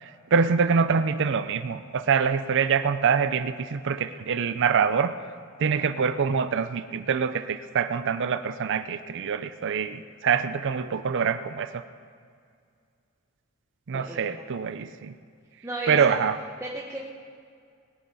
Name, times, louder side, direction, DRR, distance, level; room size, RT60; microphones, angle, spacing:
voice 1, 0.0-5.1 5.6-11.8 13.9-15.1 15.9-16.4, right 6 dB, 60° right, 11 dB, 0.5 m, -25 dB
voice 2, 13.9-14.5 15.6-16.2 16.6-17.0, right 2 dB, 15° right, -4 dB, 1.1 m, -35 dB
20.0 x 9.3 x 5.4 m, 2.2 s
head